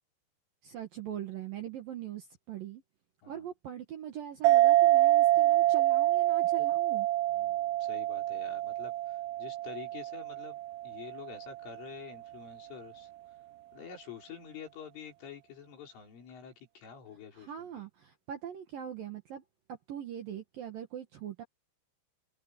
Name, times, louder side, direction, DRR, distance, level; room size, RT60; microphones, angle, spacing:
voice 1, 0.6-2.8 3.3-7.1 17.3-19.4 19.7-21.4, right 10 dB, 65° right, 2.4 m, -41 dB
sound 1, 4.4-11.5, right 15 dB, 80° right, 3.6 m, -26 dB
voice 2, 7.3-13.1 13.7-17.8, left 8 dB, 70° left, 7.8 m, -48 dB
omnidirectional pair, 5.8 m